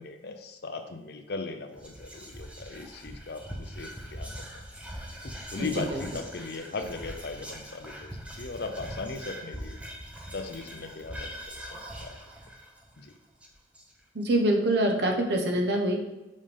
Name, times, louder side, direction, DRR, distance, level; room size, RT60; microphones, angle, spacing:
voice 1, 0.0-4.6 5.2-9.8 10.3-12.2 13.0-13.1, left 3 dB, 60° left, 7 dB, 0.5 m, -38 dB
Whispering, 1.7-14.2, equal, 5° right, 0.6 m, -42 dB
voice 2, 5.6-6.0 14.1-16.0, right 1 dB, 60° right, 2 dB, 0.8 m, -25 dB
5.5 x 5.2 x 3.4 m, 0.98 s
head